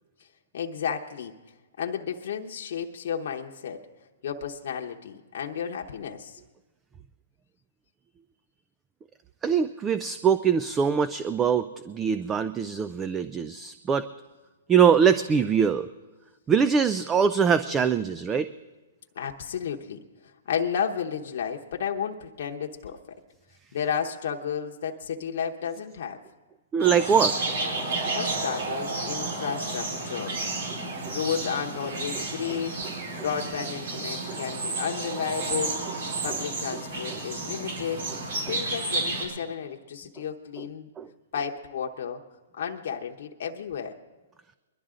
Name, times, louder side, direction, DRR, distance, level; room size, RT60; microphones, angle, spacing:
voice 1, 0.5-1.3 1.8-3.9 4.2-6.4 19.2-20.0 20.5-23.0 23.7-26.2 28.1-30.4 31.1-32.8 33.2-35.8 36.2-38.1 38.5-40.9 41.3-42.2 42.5-44.0, left 7 dB, 60° left, 2 dB, 0.9 m, -32 dB
voice 2, 9.4-14.1 14.7-15.9 16.5-18.5 26.7-27.3 28.1-28.2 30.7-30.8 31.1-31.2 32.5-32.6 34.3-34.4 37.1-37.2 38.5-38.6 41.0-41.1, right 7 dB, 15° right, 13 dB, 0.3 m, -23 dB
sound 1, 26.8-39.3, right 2 dB, 70° right, 4.1 m, -31 dB
22.0 x 12.0 x 3.8 m, 1.2 s
hypercardioid pair, 150°, 0 cm